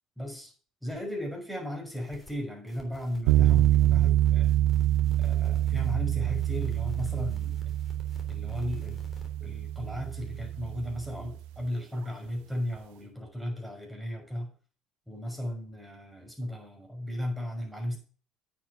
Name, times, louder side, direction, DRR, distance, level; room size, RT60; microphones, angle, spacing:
voice 1, 0.2-0.5 0.8-4.5 5.2-7.7 8.3-9.0 9.4-14.5 15.1-18.0, equal, ahead, 1 dB, 5.9 m, -36 dB
sound 1, 1.9-2.3 2.7-5.9 6.2-9.3, left 2 dB, 25° left, 3.4 m, -51 dB
sound 2, 3.3-11.4, right 13 dB, 85° right, 0.5 m, -26 dB
9.2 x 7.3 x 6.1 m, 0.39 s
supercardioid pair, 85°, 0 cm